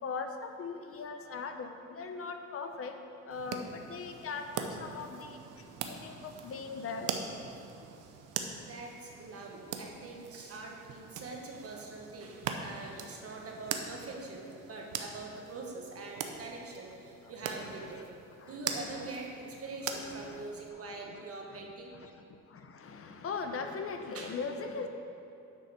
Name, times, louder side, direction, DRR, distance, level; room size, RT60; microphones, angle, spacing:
voice 1, 0.0-3.0 3.2-5.4 5.8-7.1 17.5-18.0 18.4-18.5 20.2-20.4 20.8-21.2 21.5-21.6 21.9-24.9, left 4 dB, 50° left, 6 dB, 0.7 m, -40 dB
sound 1, 3.3-20.7, right 6 dB, 85° right, 0.7 m, -42 dB
voice 2, 8.6-18.0 18.4-22.0 24.1-24.4, right 3 dB, 50° right, 0 dB, 1.5 m, -44 dB
9.7 x 4.2 x 6.5 m, 2.8 s
cardioid pair, 90°, 30 cm